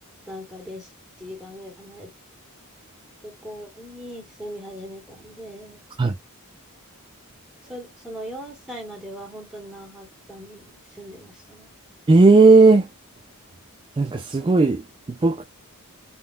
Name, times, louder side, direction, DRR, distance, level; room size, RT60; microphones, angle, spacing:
voice 1, 0.3-0.9 1.2-2.1 3.2-5.8 7.6-11.7, equal, 5° right, 1.1 m, -39 dB
voice 2, 12.1-12.9 14.0-14.8 15.2-15.4, right 3 dB, 20° right, 0.3 m, -14 dB
3.6 x 2.3 x 2.4 m
head